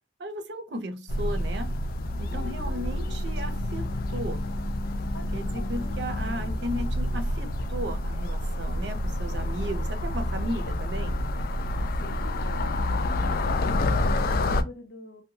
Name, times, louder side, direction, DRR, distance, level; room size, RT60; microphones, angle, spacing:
voice 1, 0.2-1.7 2.2-4.4 5.3-11.2, right 1 dB, 70° right, 0.6 m, -35 dB
sound 1, 1.1-14.6, left 1 dB, 55° left, 0.3 m, -28 dB
voice 2, 2.3-3.2 5.1-6.0 12.0-15.2, left 2 dB, 90° left, 0.8 m, -45 dB
2.7 x 2.2 x 2.7 m
head